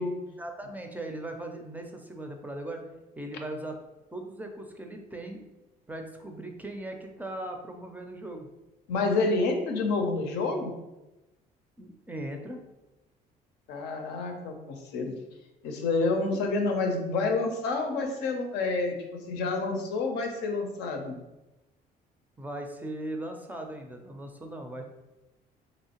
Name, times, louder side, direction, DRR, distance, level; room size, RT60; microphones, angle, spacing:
voice 1, 0.3-2.8 3.2-3.8 4.1-5.4 5.9-8.5 11.8-12.6 22.4-24.8, right 1 dB, 10° right, 3 dB, 0.4 m, -38 dB
voice 2, 8.9-10.7 13.7-15.1 15.6-19.0 19.3-21.2, left 3 dB, 85° left, 3 dB, 0.6 m, -28 dB
3.0 x 2.7 x 2.9 m, 1.0 s
cardioid pair, 110°, 17 cm